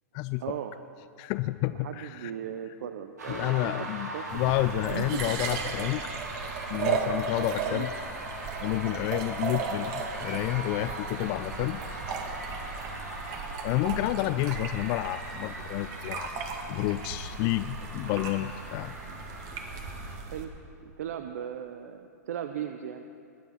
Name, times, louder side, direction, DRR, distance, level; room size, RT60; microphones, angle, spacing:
voice 1, 0.4-0.7 1.7-3.9 4.1-5.3 7.6-7.9 20.2-20.5 20.8-23.0, right 9 dB, 65° right, 7 dB, 0.7 m, -37 dB
voice 2, 1.2-2.3 3.3-6.1 6.7-7.9 8.6-12.0 13.6-16.4 16.7-18.9, left 16 dB, 45° left, 12 dB, 0.4 m, -30 dB
sound 1, 3.2-20.2, right 2 dB, 85° right, 3.4 m, -40 dB
sound 2, 4.3-20.4, right 5 dB, 45° right, 1.9 m, -36 dB
21.5 x 9.3 x 5.7 m, 2.5 s
hypercardioid pair, 105°, 9 cm